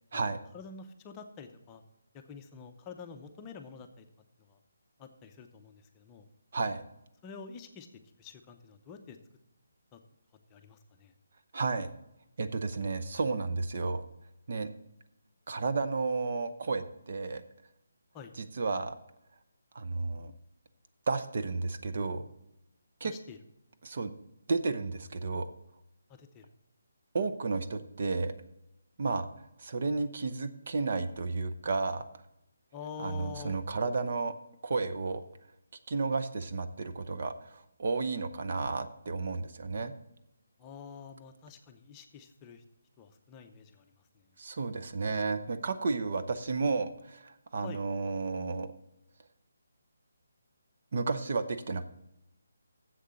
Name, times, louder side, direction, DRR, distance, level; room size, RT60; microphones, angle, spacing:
voice 1, 0.1-1.8 2.1-4.1 4.5-4.6 5.0-6.3 7.2-9.2 9.9-10.0 10.5-11.1 18.1-18.3 23.0-23.4 26.1-26.5 32.7-33.5 40.6-42.6 43.0-43.9 44.1-44.2 47.6-47.8, left 6 dB, 20° left, 5 dB, 0.7 m, -47 dB
voice 2, 6.5-6.8 11.5-11.9 12.4-14.0 14.5-14.7 15.5-17.4 18.4-19.0 19.7-20.3 21.1-22.2 23.0-23.1 23.8-24.1 24.5-25.5 27.1-28.3 29.0-29.3 29.6-32.0 33.0-34.3 34.6-35.2 35.9-39.9 44.4-48.7 50.9-51.9, right 4 dB, 55° right, 9 dB, 0.8 m, -32 dB
7.6 x 6.6 x 7.6 m, 0.85 s
figure-of-eight pair, 160°, 0 cm